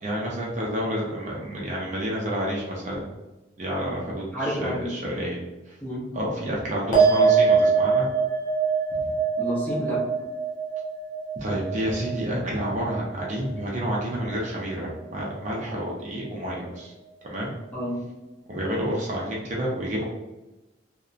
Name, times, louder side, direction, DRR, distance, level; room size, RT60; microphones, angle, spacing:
voice 1, 0.0-3.0 3.6-5.4 6.1-8.1 8.9-9.1 11.4-16.9 17.2-17.6 18.5-20.0, equal, 40° right, -3 dB, 0.5 m, -29 dB
voice 2, 4.3-4.9 5.8-6.1 9.4-10.1 17.7-18.1, equal, 10° left, -7 dB, 0.6 m, -30 dB
sound 1, 6.9-13.6 13.9-14.5, right 5 dB, 45° left, 0.8 m, -24 dB
2.7 x 2.1 x 2.4 m, 1.1 s
head